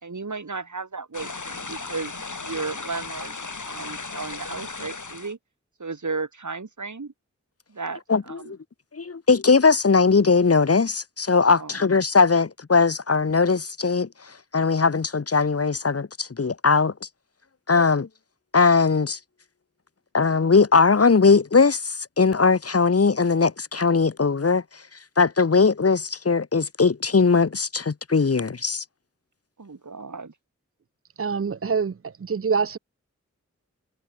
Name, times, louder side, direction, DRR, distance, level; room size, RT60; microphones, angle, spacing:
voice 1, 0.0-3.4 3.7-5.4 5.8-7.1 7.7-8.5 11.5-11.8 29.6-30.3, right 4 dB, 80° right, 3.0 m, -34 dB
sound 1, 1.1-5.3, left 3 dB, 85° left, 7.6 m, -35 dB
voice 2, 8.1-8.6 8.9-14.1 14.5-17.1 17.7-18.1 18.5-19.2 20.1-24.6 25.2-28.8, left 4 dB, 55° left, 0.9 m, -20 dB
voice 3, 31.2-32.8, right 5 dB, 50° right, 0.6 m, -25 dB
wide cardioid pair, 60°, 29 cm